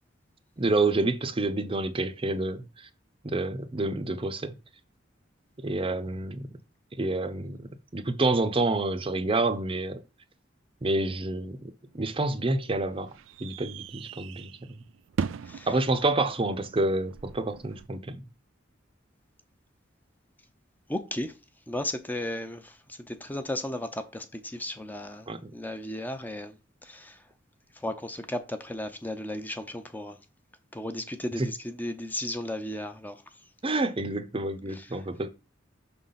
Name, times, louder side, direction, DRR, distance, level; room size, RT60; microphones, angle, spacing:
voice 1, 0.6-2.9 3.2-4.5 5.6-6.5 7.0-7.6 7.9-10.0 10.8-13.1 13.4-14.8 15.7-18.2 25.3-25.5 31.4-31.5 33.6-35.3, right 2 dB, 30° right, 0.6 m, -28 dB
sound 1, 11.9-17.9, right 6 dB, 90° right, 0.4 m, -39 dB
voice 2, 20.9-21.3 21.7-26.5 26.8-27.2 27.8-30.2 30.7-33.2 34.7-34.9, left 1 dB, 10° left, 0.6 m, -35 dB
6.0 x 3.9 x 5.7 m
head